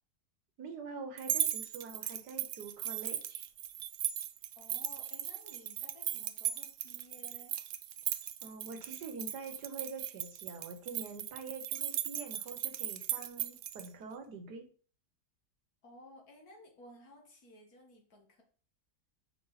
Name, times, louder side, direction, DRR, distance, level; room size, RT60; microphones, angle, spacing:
voice 1, 0.6-3.5 8.4-14.7, right 4 dB, 85° right, 6 dB, 1.6 m, -45 dB
sound 1, 1.2-13.9, right 11 dB, 70° right, 0.7 m, -37 dB
voice 2, 4.5-7.6 15.8-18.4, left 1 dB, 65° left, 1 dB, 2.1 m, -56 dB
5.5 x 5.4 x 4.0 m, 0.43 s
omnidirectional pair, 1.7 m